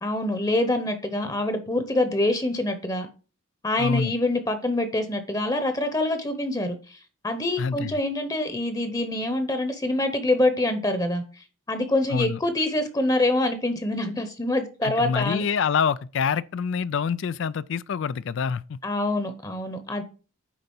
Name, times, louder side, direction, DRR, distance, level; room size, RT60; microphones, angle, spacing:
voice 1, 0.0-3.1 3.6-7.0 7.2-11.2 11.7-15.4 18.8-20.0, left 1 dB, 15° left, 0.9 m, -25 dB
voice 2, 3.8-4.1 7.6-7.9 12.1-12.4 14.8-18.8, left 6 dB, 55° left, 0.3 m, -26 dB
9.7 x 3.9 x 5.4 m
head